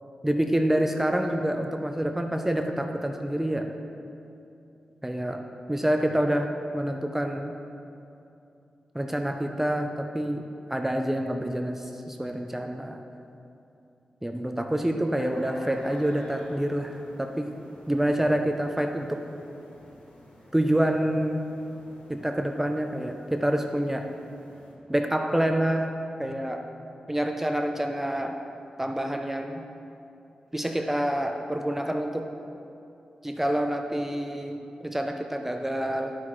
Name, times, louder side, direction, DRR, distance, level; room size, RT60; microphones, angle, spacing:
voice 1, 0.2-3.7 5.0-5.4 5.7-7.5 8.9-10.4 10.7-13.0 14.2-17.5 17.9-19.2 20.5-21.4 22.1-24.1 24.9-25.9 26.2-26.7 27.1-28.4 28.8-29.6 30.5-32.3 33.2-36.1, right 1 dB, 10° right, 4 dB, 0.5 m, -27 dB
sound 1, 15.1-24.7, left 1 dB, 65° left, 1.5 m, -50 dB
11.5 x 5.7 x 3.1 m, 2.7 s
wide cardioid pair, 80°, 3 cm